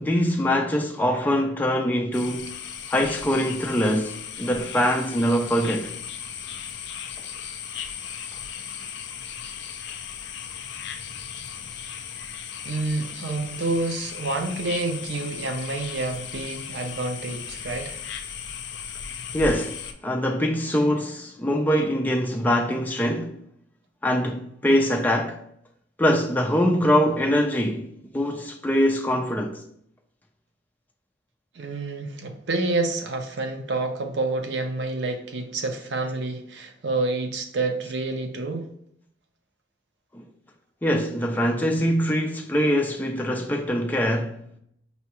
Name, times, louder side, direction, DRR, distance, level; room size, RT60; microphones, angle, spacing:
voice 1, 0.0-2.5 2.9-5.9 19.3-23.4 24.0-25.4 26.0-27.9 28.1-29.6 40.1-40.3 40.8-44.4, equal, 10° left, 0.3 m, -23 dB
sound 1, 2.1-19.9, left 7 dB, 75° left, 0.4 m, -36 dB
voice 2, 12.6-18.0 31.5-38.7, right 2 dB, 75° right, 0.6 m, -28 dB
5.4 x 2.3 x 2.9 m
head